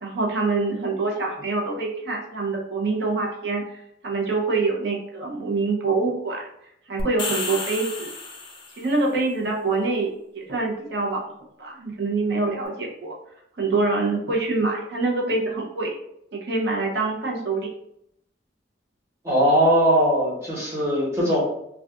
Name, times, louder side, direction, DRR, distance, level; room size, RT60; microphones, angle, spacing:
voice 1, 0.0-8.1 8.7-11.2 11.6-13.1 13.6-15.9 16.3-17.7, right 3 dB, 60° right, -1 dB, 0.7 m, -25 dB
sound 1, 7.0-8.9, left 3 dB, 25° left, 0.4 m, -31 dB
voice 2, 19.2-21.4, equal, 15° right, -7 dB, 1.1 m, -20 dB
2.4 x 2.3 x 3.6 m, 0.76 s
head